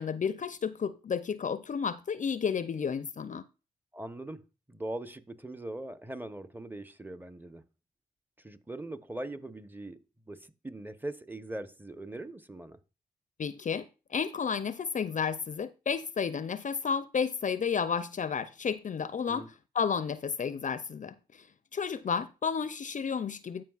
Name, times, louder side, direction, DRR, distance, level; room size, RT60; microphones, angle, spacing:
voice 1, 0.0-3.4 13.4-21.5 21.7-23.6, left 6 dB, 45° left, 0.5 m, -32 dB
voice 2, 3.9-4.4 4.7-7.6 8.4-10.0 10.3-12.8 19.3-19.5, right 1 dB, 10° right, 0.9 m, -41 dB
13.0 x 4.8 x 2.4 m
supercardioid pair, 40°, 18 cm